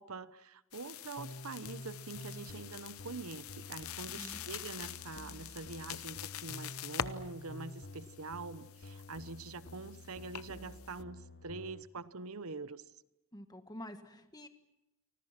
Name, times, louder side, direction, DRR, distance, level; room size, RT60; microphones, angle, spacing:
voice 1, 0.0-12.8, right 3 dB, 85° right, 14 dB, 1.0 m, -45 dB
sound 1, 0.7-11.0, left 9 dB, 80° left, 0.8 m, -45 dB
sound 2, 1.2-11.8, left 2 dB, 55° left, 1.2 m, -50 dB
voice 2, 4.1-4.5 13.3-14.5, left 1 dB, 15° left, 7 dB, 1.7 m, -48 dB
29.5 x 25.0 x 6.0 m, 0.93 s
head